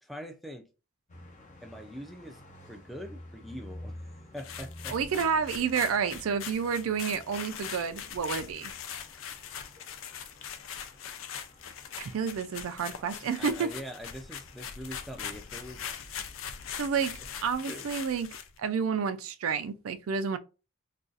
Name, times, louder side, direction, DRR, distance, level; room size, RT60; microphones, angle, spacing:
voice 1, 0.0-0.7 1.6-2.4 2.7-4.0 4.3-5.3 8.9-10.0 13.4-15.9 17.7-17.9, equal, ahead, 0.4 m, -44 dB
sound 1, 1.1-18.0, left 1 dB, 35° left, 0.6 m, -51 dB
sound 2, 4.4-18.6, left 8 dB, 75° left, 0.4 m, -41 dB
voice 2, 4.9-8.7 12.0-13.7 16.8-18.3 18.6-20.4, right 6 dB, 85° right, 0.4 m, -30 dB
2.5 x 2.4 x 3.8 m
head